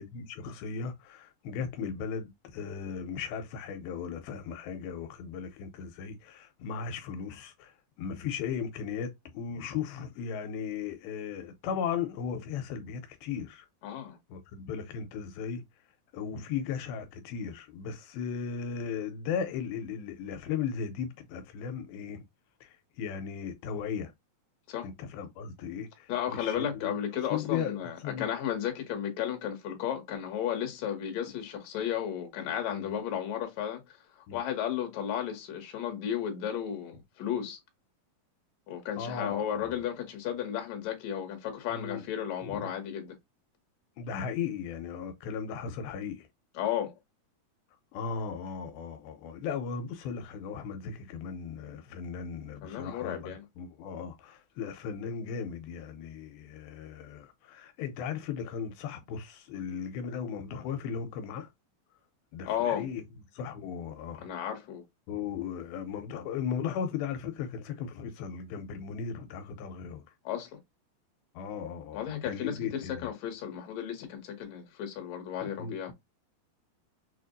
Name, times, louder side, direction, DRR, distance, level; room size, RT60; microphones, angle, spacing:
voice 1, 0.0-13.7 14.3-15.6 16.1-22.2 22.6-24.1 24.8-27.0 27.3-28.3 32.7-32.9 34.3-34.4 39.0-39.8 41.7-42.0 42.4-42.7 44.0-46.3 47.9-61.5 62.3-63.0 63.3-64.3 65.1-70.0 71.4-73.1 75.4-75.9, left 7 dB, 85° left, 2.5 m, -37 dB
voice 2, 13.8-14.2 24.7-24.9 26.1-34.0 34.3-37.6 38.7-43.2 46.6-46.9 52.6-53.4 62.5-62.9 64.2-64.8 70.2-70.5 71.9-75.9, left 9 dB, 60° left, 2.0 m, -34 dB
6.2 x 2.5 x 2.5 m
omnidirectional pair, 4.4 m